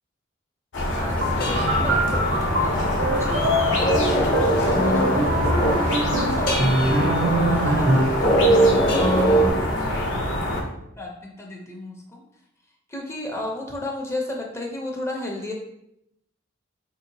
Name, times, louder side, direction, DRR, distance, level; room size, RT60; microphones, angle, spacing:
sound 1, 0.7-10.6, left 1 dB, 80° left, 0.8 m, -25 dB
voice 1, 0.9-9.6 9.9-12.2 12.9-15.5, left 2 dB, 15° left, 0 dB, 0.5 m, -34 dB
sound 2, 1.1-9.5, right 1 dB, 50° left, 0.8 m, -24 dB
sound 3, 1.2-8.3, right 1 dB, 70° right, 0.6 m, -24 dB
4.3 x 2.8 x 2.6 m, 0.78 s
head